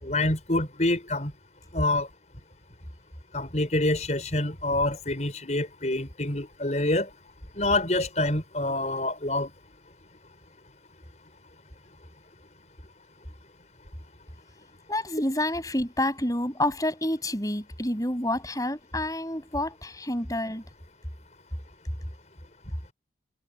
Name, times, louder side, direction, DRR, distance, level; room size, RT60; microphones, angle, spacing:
voice 1, 0.0-1.3 1.7-2.1 3.3-7.1 7.5-9.5, left 2 dB, 40° left, 6.1 m, -26 dB
voice 2, 14.9-20.6, left 1 dB, 20° left, 7.7 m, -28 dB
head